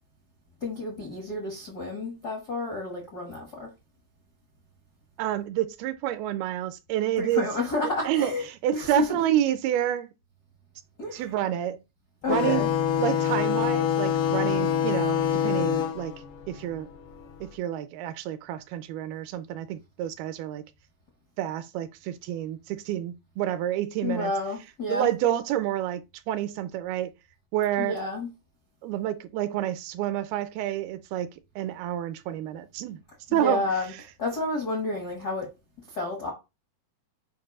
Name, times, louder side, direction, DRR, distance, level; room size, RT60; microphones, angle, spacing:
voice 1, 0.6-3.7 7.2-8.5 8.7-9.2 11.0-11.3 12.2-12.7 24.0-25.1 27.8-28.3 33.3-33.9 34.2-35.5 35.9-36.3, left 2 dB, 75° left, 0.9 m, -30 dB
voice 2, 5.2-7.5 8.1-8.3 8.6-10.1 11.1-11.8 12.3-12.6 13.0-16.2 16.5-16.9 17.4-20.6 21.4-24.3 24.9-27.1 27.5-28.0 28.8-31.3 31.6-33.0 33.3-33.6, right 12 dB, 80° right, 2.4 m, -28 dB
sound 1, 12.3-17.4, left 9 dB, 90° left, 3.1 m, -26 dB
7.8 x 2.6 x 5.3 m
omnidirectional pair, 4.5 m